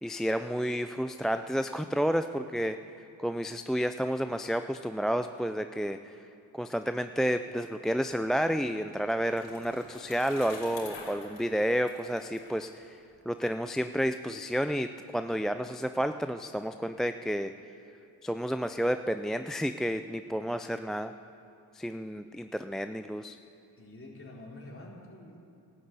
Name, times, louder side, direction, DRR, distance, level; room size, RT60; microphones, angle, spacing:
voice 1, 0.0-2.8 3.2-6.2 6.5-17.5 18.2-21.1 21.7-23.4, equal, ahead, 8 dB, 0.3 m, -31 dB
Bicycle, 8.5-13.4, left 4 dB, 85° left, 2.7 m, -48 dB
voice 2, 23.7-25.4, left 1 dB, 30° left, -3 dB, 3.8 m, -47 dB
12.5 x 11.5 x 8.0 m, 2.7 s
cardioid pair, 60°, 44 cm